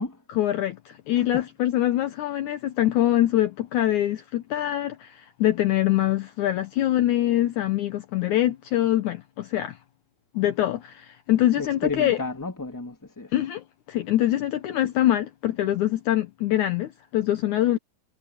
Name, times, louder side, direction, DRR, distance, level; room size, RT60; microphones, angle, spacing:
voice 1, 0.3-9.8 10.3-12.2 13.3-17.8, left 13 dB, 70° left, 2.1 m, -24 dB
voice 2, 1.1-1.5 11.6-13.3, left 3 dB, 5° left, 2.2 m, -32 dB
omnidirectional pair, 4.1 m